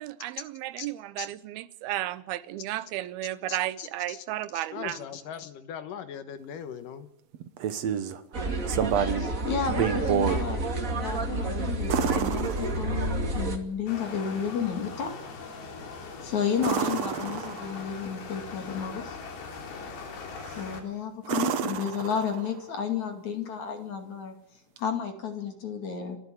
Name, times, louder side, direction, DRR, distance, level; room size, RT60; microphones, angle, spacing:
voice 1, 0.0-5.1, right 14 dB, 85° right, 2.8 m, -33 dB
voice 2, 3.5-4.2 4.5-7.1, left 8 dB, 70° left, 2.6 m, -39 dB
sound 1, 7.3-8.2 8.7-9.3 9.7-10.4 11.9-13.2 16.6-17.9 20.4-20.7 21.2-22.6 24.8-24.9, right 8 dB, 60° right, 1.9 m, -29 dB
sound 2, 8.3-13.6, right 2 dB, 25° right, 2.1 m, -30 dB
voice 3, 9.2-10.7 11.0-15.2 16.2-19.2 20.6-24.4 24.8-26.2, left 7 dB, 55° left, 3.4 m, -32 dB
sound 3, 13.9-20.8, left 4 dB, 85° left, 5.2 m, -41 dB
29.5 x 12.0 x 8.5 m
omnidirectional pair, 4.3 m